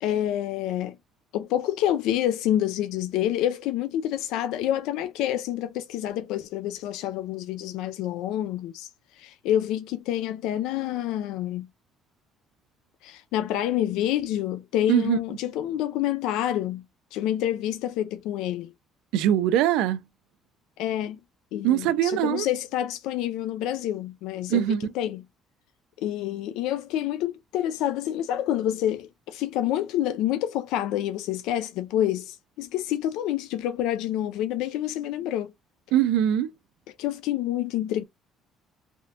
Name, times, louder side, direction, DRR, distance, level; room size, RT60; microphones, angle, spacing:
voice 1, 0.0-1.0 1.3-11.7 13.0-16.8 17.1-18.7 20.8-21.2 21.5-25.2 26.0-35.5 37.0-38.0, left 12 dB, 85° left, 0.3 m, -28 dB
voice 2, 19.1-20.0 21.6-22.5 24.5-24.8 35.9-36.5, right 11 dB, 85° right, 0.4 m, -22 dB
3.5 x 2.4 x 2.6 m
cardioid pair, 95°, 0 cm